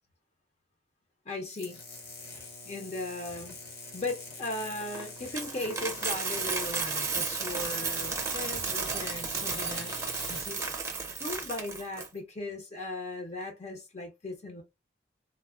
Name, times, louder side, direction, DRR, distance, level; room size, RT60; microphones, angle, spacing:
voice 1, 1.3-1.8 2.6-3.6 3.9-9.9 10.3-10.6 11.1-14.6, left 2 dB, 35° left, 0.6 m, -37 dB
sound 1, 1.5-10.4, left 3 dB, 55° left, 1.0 m, -45 dB
Coin (dropping), 4.6-12.1, right 4 dB, 15° right, 0.6 m, -33 dB
3.2 x 2.1 x 2.3 m
head